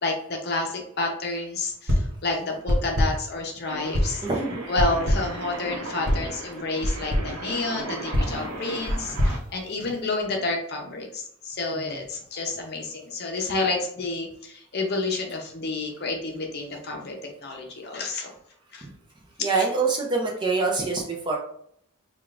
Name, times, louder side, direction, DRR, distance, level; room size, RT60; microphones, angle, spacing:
voice 1, 0.0-4.2 4.7-18.3 18.7-18.9 19.6-19.7, left 3 dB, 45° left, 2 dB, 0.7 m, -30 dB
sound 1, 1.9-2.2 2.7-3.3 3.9-4.3 4.8-5.4 6.1-6.3 6.8-7.4 8.1-10.2, equal, 50° right, 0.8 m, -25 dB
sound 2, 3.6-9.4, right 2 dB, 90° right, 0.9 m, -37 dB
voice 2, 4.2-4.7 9.3-9.4 11.7-12.0 18.8-18.9 19.4-21.4, right 4 dB, 20° right, -1 dB, 0.5 m, -25 dB
4.9 x 2.4 x 2.4 m, 0.67 s
head